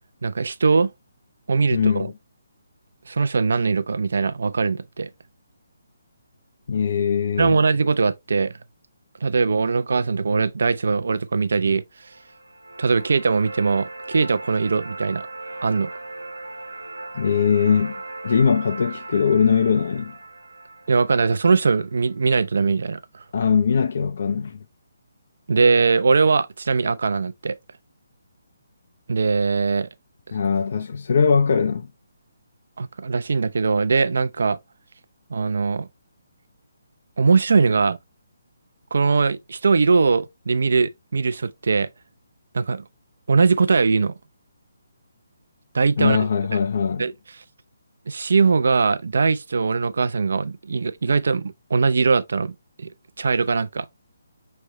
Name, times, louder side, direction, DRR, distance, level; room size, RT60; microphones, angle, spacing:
voice 1, 0.2-0.9 1.5-2.1 3.1-5.1 7.4-8.5 9.2-11.8 12.8-15.3 15.6-15.9 20.9-23.2 25.5-27.6 29.1-29.9 32.8-34.6 35.3-35.9 37.2-38.0 38.9-41.9 42.5-42.8 43.3-44.1 45.7-46.3 47.0-47.1 48.1-52.9 53.2-53.9, right 4 dB, 65° right, 0.4 m, -21 dB
voice 2, 1.7-2.1 6.7-7.6 17.1-20.2 23.3-24.6 30.3-31.9 46.0-47.1, left 6 dB, 55° left, 0.4 m, -21 dB
sound 1, 12.1-22.1, right 2 dB, 85° right, 1.0 m, -38 dB
5.3 x 3.2 x 2.9 m
figure-of-eight pair, 145°, 0 cm